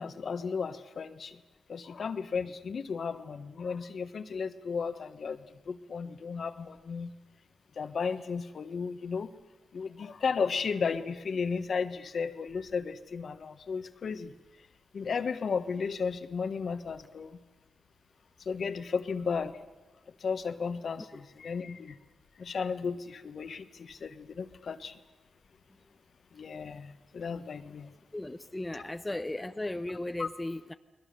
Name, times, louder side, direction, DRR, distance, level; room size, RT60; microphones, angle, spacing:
voice 1, 0.0-1.4 1.7-7.1 7.8-9.3 9.7-14.3 14.9-17.4 18.4-19.6 20.2-22.0 22.4-25.0 26.3-27.9 30.2-30.3, left 5 dB, 65° left, 11 dB, 1.4 m, -34 dB
voice 2, 28.1-30.7, left 1 dB, 15° left, 8 dB, 0.9 m, -36 dB
30.0 x 21.0 x 6.8 m, 1.2 s
cardioid pair, 65°, 0 cm